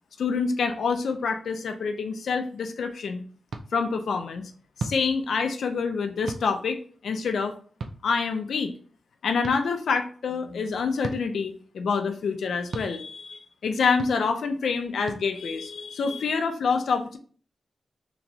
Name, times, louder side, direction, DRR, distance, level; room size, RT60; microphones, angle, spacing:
voice 1, 0.2-3.2 3.7-4.5 4.8-7.6 8.0-8.7 9.2-17.2, left 5 dB, 85° left, 6 dB, 0.5 m, -27 dB
sound 1, 3.5-3.6 4.8-5.0 6.3-6.4 7.8-8.0 9.4-9.6 11.0-11.2 12.7-12.9 14.0-14.1 15.1-15.2, right 4 dB, 65° right, 0.5 m, -33 dB
3.4 x 3.0 x 4.0 m, 0.42 s
wide cardioid pair, 110°, 0 cm